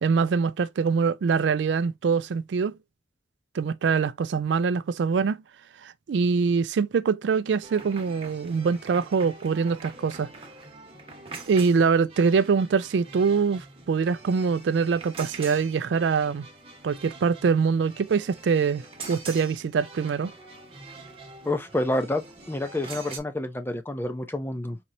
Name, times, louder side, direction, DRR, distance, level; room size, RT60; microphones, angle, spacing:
voice 1, 0.0-2.8 3.5-5.4 5.8-10.3 11.5-16.5 16.8-20.3, right 5 dB, 80° right, 0.4 m, -24 dB
sound 1, 7.6-23.2, right 3 dB, 35° right, 1.0 m, -44 dB
voice 2, 21.4-24.8, left 1 dB, 10° left, 0.5 m, -28 dB
4.3 x 2.9 x 2.6 m
head